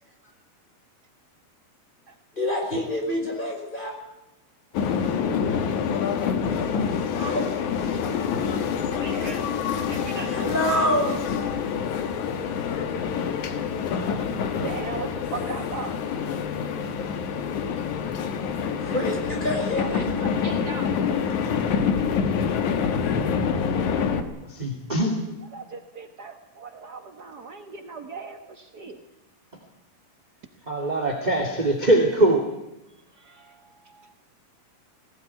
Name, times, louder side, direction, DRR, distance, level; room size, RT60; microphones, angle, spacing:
voice 1, 2.4-4.0 7.1-7.5 10.3-11.2 18.8-20.2, left 1 dB, 15° left, 1 dB, 5.5 m, -26 dB
sound 1, 4.7-24.2, left 6 dB, 65° left, 2.8 m, -26 dB
voice 2, 6.0-6.9 7.2-7.3 7.9-8.0 9.0-9.5 9.9-10.4 11.6-12.0 12.9-13.0 14.4-16.0 19.7-21.0 25.5-29.0 32.9-34.1, right 4 dB, 80° right, 6 dB, 0.9 m, -39 dB
voice 3, 24.5-25.2 30.7-32.4, right 1 dB, 15° right, 4 dB, 2.0 m, -22 dB
19.5 x 18.0 x 9.7 m, 0.91 s
omnidirectional pair, 4.0 m